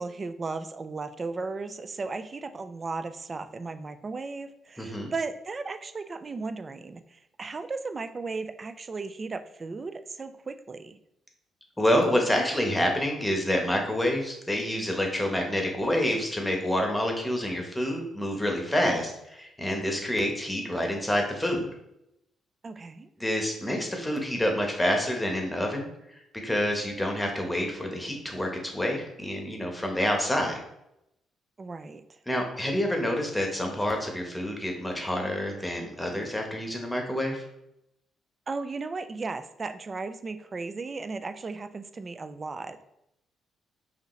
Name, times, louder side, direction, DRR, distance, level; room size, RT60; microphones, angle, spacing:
voice 1, 0.0-11.0 22.6-23.1 31.6-32.2 38.5-42.8, right 3 dB, 35° right, 11 dB, 0.4 m, -36 dB
voice 2, 4.8-5.1 11.8-21.7 23.2-30.6 32.3-37.4, equal, 10° left, 2 dB, 1.0 m, -28 dB
5.0 x 2.6 x 3.2 m, 0.82 s
cardioid pair, 90°, 0 cm